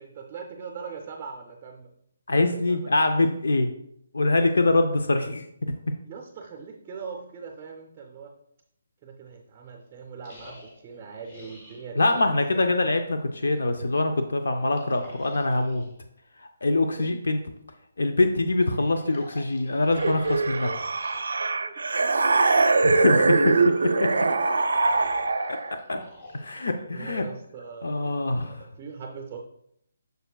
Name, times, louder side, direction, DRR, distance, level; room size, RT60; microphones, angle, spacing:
voice 1, 0.0-1.9 2.5-2.8 6.0-8.3 9.0-12.7 17.0-17.1 21.6-21.7 26.4-26.5 26.9-29.4, right 5 dB, 15° right, 1 dB, 0.5 m, -41 dB
voice 2, 2.3-3.7 4.1-5.9 12.0-15.8 16.4-17.4 18.0-20.7 22.8-24.1 25.5-25.6 25.9-26.0 26.3-27.2 27.8-28.6, left 2 dB, 85° left, 6 dB, 0.6 m, -24 dB
sound 1, 10.2-11.9 14.6-16.0 18.6-21.2 23.5-27.4, left 2 dB, 30° left, 1.3 m, -46 dB
sound 2, 19.9-25.8, right 3 dB, 85° right, 0.4 m, -22 dB
6.8 x 6.4 x 2.3 m, 0.73 s
hypercardioid pair, 175°, 0 cm